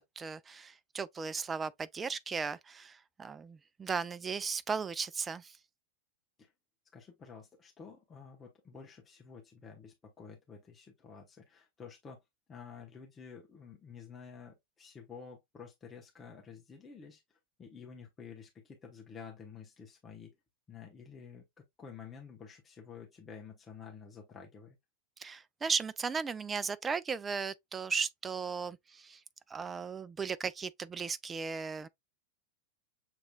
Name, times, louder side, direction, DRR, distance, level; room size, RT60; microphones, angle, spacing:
voice 1, 0.0-5.6 25.2-29.2 29.5-31.9, right 5 dB, 15° right, 0.4 m, -36 dB
voice 2, 6.9-12.2 12.5-20.3 20.7-24.8, left 6 dB, 20° left, 1.0 m, -51 dB
6.6 x 3.0 x 2.3 m
figure-of-eight pair, 90°, 0 cm